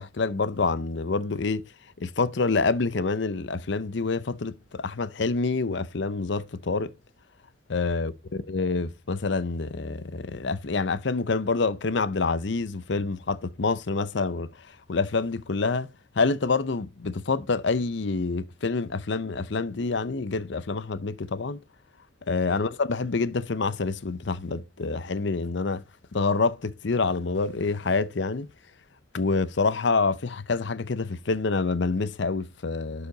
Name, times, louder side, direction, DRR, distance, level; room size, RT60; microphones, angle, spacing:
voice 1, 0.0-1.6 2.0-6.9 7.7-14.5 14.9-15.9 16.2-21.6 22.3-25.8 26.1-28.5 29.1-33.1, left 4 dB, 65° left, 0.7 m, -27 dB
11.5 x 5.0 x 3.9 m
head